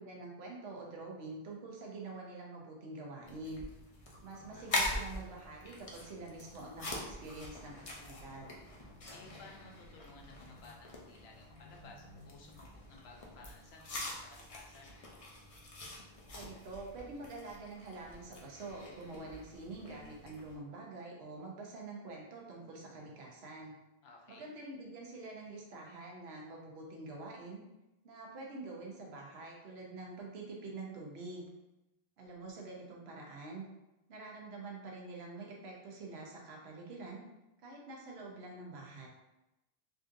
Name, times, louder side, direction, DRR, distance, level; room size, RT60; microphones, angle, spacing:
voice 1, 0.0-3.7 4.2-8.5 16.3-23.8 24.3-27.6 28.0-31.5 32.2-33.7 34.1-37.2 37.6-39.1, right 3 dB, 85° right, -2 dB, 1.0 m, -46 dB
sound 1, 3.2-20.6, left 1 dB, 40° left, 0.6 m, -44 dB
voice 2, 9.1-14.9 24.0-24.5, left 3 dB, 85° left, 0 dB, 0.9 m, -56 dB
3.6 x 2.5 x 2.5 m, 0.96 s
omnidirectional pair, 1.0 m